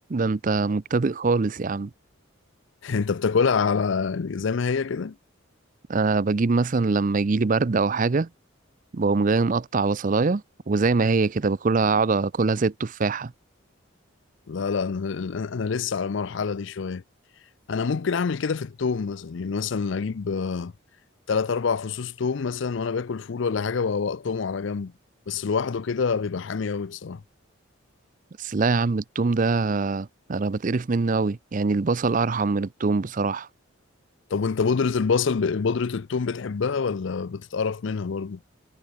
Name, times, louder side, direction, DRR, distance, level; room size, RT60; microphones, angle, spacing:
voice 1, 0.1-1.9 5.9-8.3 8.9-13.3 28.4-33.5, right 4 dB, 40° right, 0.5 m, -23 dB
voice 2, 2.8-5.2 14.5-17.0 17.7-20.7 21.3-24.9 25.3-27.2 34.3-38.4, left 5 dB, 60° left, 0.5 m, -26 dB
head